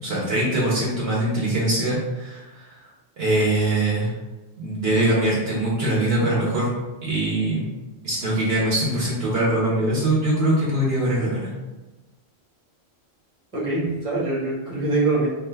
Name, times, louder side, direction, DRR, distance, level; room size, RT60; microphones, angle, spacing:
voice 1, 0.0-2.8 3.2-4.1 4.6-6.7 7.0-7.7 8.0-11.5, right 1 dB, 70° right, -6 dB, 0.9 m, -22 dB
voice 2, 13.5-15.3, right 2 dB, 30° right, -7 dB, 1.0 m, -23 dB
2.5 x 2.2 x 3.3 m, 1.1 s
omnidirectional pair, 1.1 m